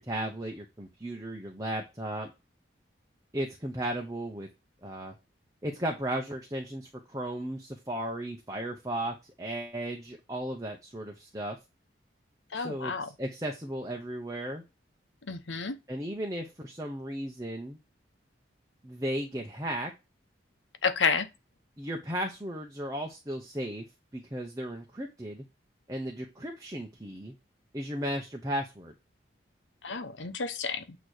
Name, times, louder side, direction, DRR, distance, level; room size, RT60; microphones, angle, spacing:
voice 1, 0.0-2.3 3.3-4.5 4.8-5.1 5.6-11.6 12.5-12.9 13.2-14.6 15.9-17.8 18.8-19.9 21.8-23.9 24.1-25.4 25.9-27.3 27.7-28.9, right 1 dB, 20° right, 0.9 m, -35 dB
voice 2, 12.5-13.1 15.3-15.7 20.8-21.3 29.8-31.0, left 5 dB, 80° left, 0.9 m, -30 dB
8.7 x 3.1 x 6.5 m
head